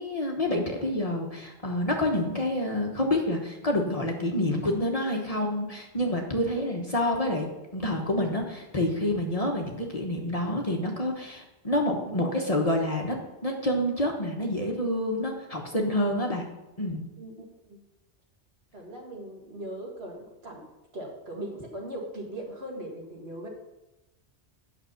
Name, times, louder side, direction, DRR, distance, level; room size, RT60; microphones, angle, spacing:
voice 1, 0.0-7.5 7.7-13.2 13.4-16.5 16.8-17.0, left 1 dB, 35° left, 1 dB, 1.1 m, -28 dB
voice 2, 12.0-12.3 17.2-17.8 18.7-20.6 20.9-23.5, right 1 dB, 60° right, -1 dB, 2.2 m, -39 dB
9.0 x 6.3 x 5.7 m, 0.98 s
omnidirectional pair, 1.2 m